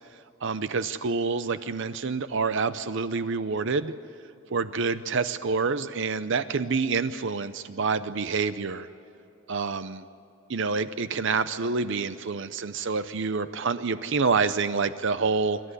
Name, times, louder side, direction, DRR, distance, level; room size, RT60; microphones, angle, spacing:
voice 1, 0.4-3.9 4.5-8.9 9.5-10.0 10.5-15.6, right 4 dB, 55° right, 13 dB, 0.6 m, -27 dB
26.5 x 13.5 x 9.8 m, 2.9 s
head